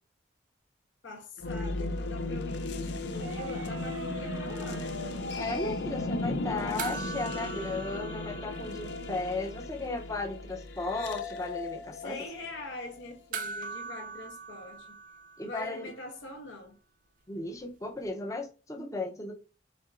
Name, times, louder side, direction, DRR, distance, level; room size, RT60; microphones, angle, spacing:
voice 1, 1.0-5.0 11.9-15.0 15.4-16.8, left 2 dB, 75° left, 0.9 m, -43 dB
sound 1, 1.4-13.2, left 2 dB, 60° left, 0.5 m, -36 dB
sound 2, 3.1-8.7, right 3 dB, 85° right, 0.6 m, -46 dB
voice 2, 5.4-12.2 15.4-15.9 17.3-19.3, left 2 dB, 15° left, 0.6 m, -35 dB
sound 3, 6.8-9.5 9.7-9.8 13.3-15.9 18.1-18.2, right 5 dB, 45° right, 0.4 m, -41 dB
4.3 x 3.6 x 2.4 m
head